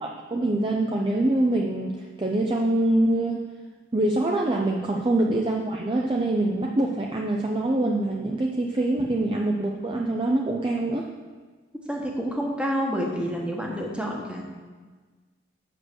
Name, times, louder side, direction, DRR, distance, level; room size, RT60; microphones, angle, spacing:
voice 1, 0.0-3.4 3.9-11.1, right 1 dB, 25° right, 0 dB, 0.5 m, -24 dB
voice 2, 11.9-14.4, equal, 5° right, -1 dB, 1.2 m, -28 dB
7.6 x 6.2 x 6.1 m, 1.4 s
head